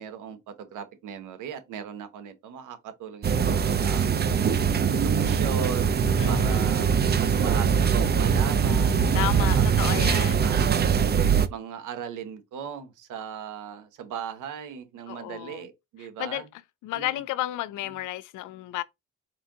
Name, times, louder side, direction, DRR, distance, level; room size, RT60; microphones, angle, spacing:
voice 1, 0.0-4.5 4.9-6.0 6.3-6.9 7.2-9.7 10.0-10.7 11.5-16.5 16.9-17.2 17.9-18.0, right 7 dB, 85° right, 1.0 m, -38 dB
sound 1, 3.2-11.5, right 7 dB, 35° right, 0.5 m, -22 dB
voice 2, 6.2-6.7 9.1-10.5 15.1-15.7 16.2-18.8, left 15 dB, 85° left, 0.5 m, -32 dB
4.4 x 2.6 x 3.7 m
cardioid pair, 90°, 30 cm